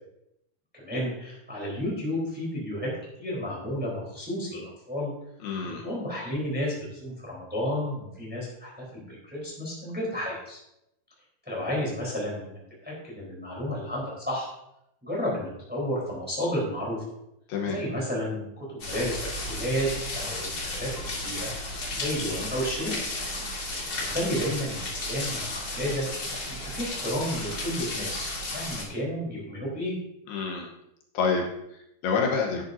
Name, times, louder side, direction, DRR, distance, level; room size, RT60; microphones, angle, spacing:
voice 1, 0.7-2.9 3.2-5.1 5.6-10.6 11.4-14.5 15.0-17.0 17.6-21.5 21.9-22.9 24.0-26.0 26.5-29.9, equal, 5° right, -4 dB, 3.0 m, -32 dB
voice 2, 5.4-5.8 17.5-17.8 30.3-30.7 31.1-32.6, left 5 dB, 75° left, 0 dB, 2.9 m, -28 dB
sound 1, 18.8-28.8, left 2 dB, 35° left, 1.6 m, -33 dB
11.0 x 10.0 x 2.7 m, 0.82 s
omnidirectional pair, 4.7 m